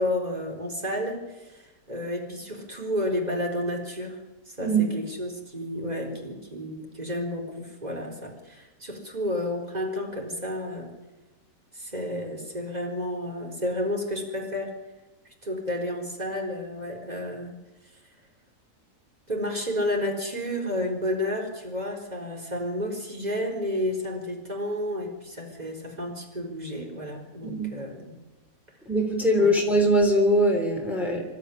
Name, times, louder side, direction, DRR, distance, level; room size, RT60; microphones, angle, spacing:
voice 1, 0.0-10.9 11.7-14.7 15.4-17.6 19.3-28.1 29.4-29.5, left 1 dB, 25° right, 1 dB, 4.2 m, -31 dB
voice 2, 4.6-4.9 27.4-27.7 28.9-31.2, right 1 dB, ahead, 0 dB, 3.5 m, -22 dB
26.5 x 12.5 x 10.0 m, 1.1 s
omnidirectional pair, 1.7 m